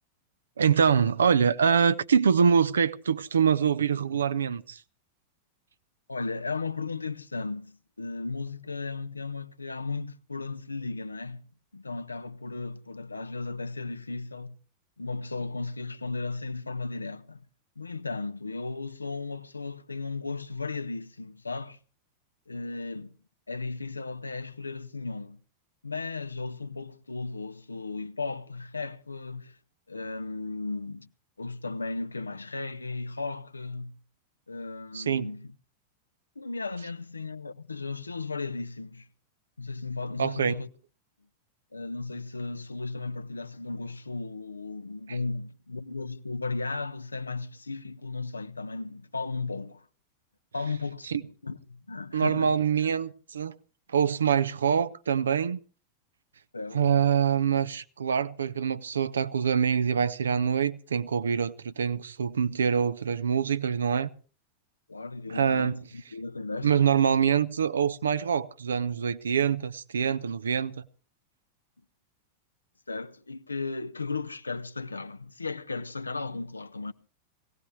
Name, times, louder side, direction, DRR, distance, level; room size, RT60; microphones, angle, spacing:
voice 1, 0.6-4.8 34.9-35.3 40.2-40.6 51.1-51.2 52.1-53.5 53.9-55.6 56.7-64.1 65.3-65.7 66.6-70.8, right 7 dB, 70° right, 0.7 m, -25 dB
voice 2, 6.1-14.6 15.0-17.5 17.8-21.8 22.5-23.2 23.5-25.4 25.8-29.6 29.9-31.1 31.4-34.0 34.5-35.5 36.4-39.1 39.6-40.7 41.7-49.9 50.5-52.6 56.5-57.0 64.9-66.8 72.9-76.9, left 3 dB, 80° left, 0.7 m, -35 dB
20.5 x 17.0 x 3.3 m
figure-of-eight pair, 90°, 0 cm